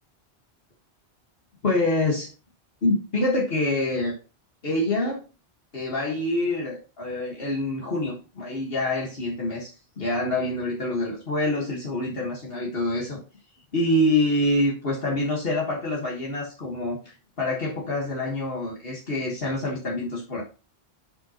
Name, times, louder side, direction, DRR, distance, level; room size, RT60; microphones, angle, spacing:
voice 1, 1.6-2.3 2.8-4.2 4.6-5.2 5.7-13.2 13.7-20.4, left 1 dB, 65° left, -2 dB, 1.8 m, -26 dB
11.0 x 5.5 x 2.9 m, 0.34 s
omnidirectional pair, 1.1 m